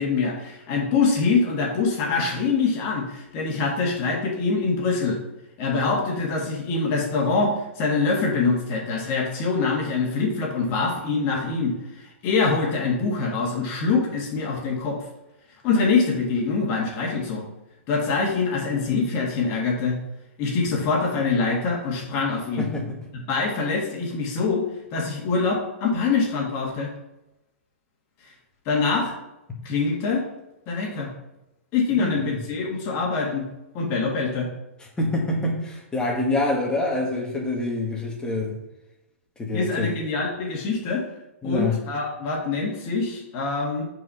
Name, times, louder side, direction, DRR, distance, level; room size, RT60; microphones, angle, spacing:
voice 1, 0.0-5.2 5.6-15.0 15.6-17.5 17.9-20.0 20.4-22.7 23.1-24.6 24.9-26.9 28.7-29.1 29.6-30.2 30.7-31.1 31.7-33.5 33.7-34.5 39.5-41.0 41.4-43.8, left 4 dB, 35° left, -1 dB, 2.0 m, -24 dB
voice 2, 31.9-32.4 35.0-38.5 39.4-39.9 41.4-41.7, left 2 dB, 10° left, -1 dB, 1.9 m, -26 dB
5.9 x 4.8 x 5.6 m, 0.93 s
hypercardioid pair, 130°, 8 cm